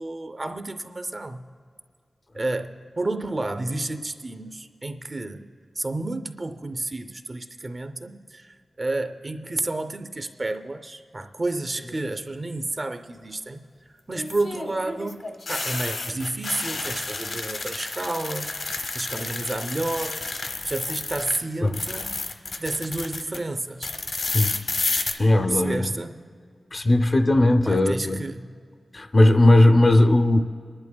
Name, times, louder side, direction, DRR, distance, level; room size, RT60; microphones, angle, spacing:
voice 1, 0.0-1.5 2.3-15.2 15.5-20.3 20.6-22.2 22.6-23.9 25.5-26.2 27.6-28.6, right 2 dB, 35° right, 8 dB, 0.5 m, -31 dB
sound 1, 11.8-12.2 14.1-21.4 21.7-23.4 23.8-25.1, left 3 dB, 65° left, 0.9 m, -31 dB
voice 2, 25.2-25.9 26.7-28.2 28.9-30.4, left 1 dB, 35° left, 8 dB, 0.5 m, -18 dB
28.5 x 11.0 x 2.2 m, 2.1 s
wide cardioid pair, 125°, 0 cm